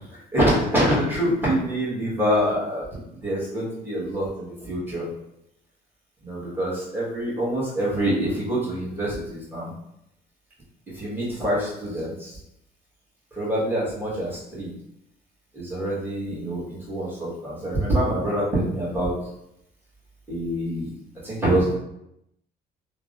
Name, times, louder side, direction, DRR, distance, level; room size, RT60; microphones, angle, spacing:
voice 1, 0.1-5.1 6.2-9.7 10.9-12.4 13.3-14.7 15.5-19.1 20.3-20.9 21.2-21.8, right 1 dB, 10° right, -8 dB, 1.4 m, -25 dB
3.3 x 2.1 x 2.5 m, 0.81 s
cardioid pair, 110°, 17 cm